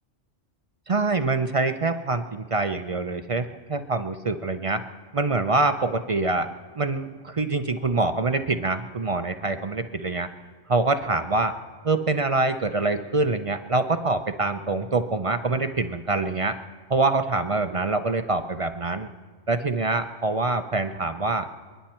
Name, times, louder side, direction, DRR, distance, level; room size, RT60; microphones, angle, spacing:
voice 1, 0.9-4.8 5.1-6.5 6.8-10.3 10.7-11.5 11.8-16.6 16.9-19.1 19.5-21.7, right 3 dB, 40° right, 8 dB, 0.5 m, -25 dB
28.5 x 10.5 x 4.4 m, 1.5 s
omnidirectional pair, 1.3 m